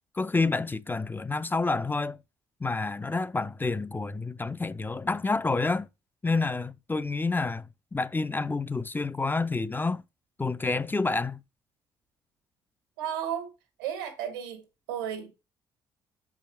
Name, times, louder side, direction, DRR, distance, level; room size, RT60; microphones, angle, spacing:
voice 1, 0.2-2.2 2.6-5.9 6.2-7.7 7.9-10.0 10.4-11.4, left 3 dB, 20° left, 0.5 m, -28 dB
voice 2, 13.0-13.5 13.8-14.6 14.9-15.3, right 9 dB, 90° right, 1.6 m, -33 dB
6.7 x 4.9 x 4.4 m
hypercardioid pair, 50°, 10 cm